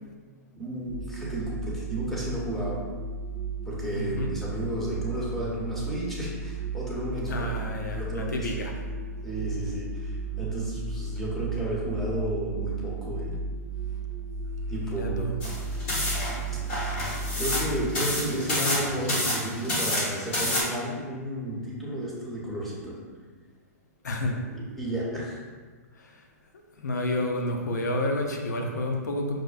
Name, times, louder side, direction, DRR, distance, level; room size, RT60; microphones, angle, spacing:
voice 1, 0.5-2.8 3.7-7.5 7.8-8.6 9.2-13.4 14.7-15.4 17.4-22.9 24.5-25.4, right 1 dB, 5° left, -7 dB, 0.9 m, -32 dB
sound 1, 0.9-17.9, right 3 dB, 40° right, 0.4 m, -34 dB
voice 2, 3.9-4.3 7.3-8.8 14.8-15.3 24.0-24.4 25.9-26.3 26.8-29.4, left 1 dB, 90° left, 2 dB, 0.5 m, -30 dB
sound 2, 15.4-20.6, left 1 dB, 45° left, 1.3 m, -29 dB
6.1 x 2.1 x 2.4 m, 1.5 s
hypercardioid pair, 140°, 9 cm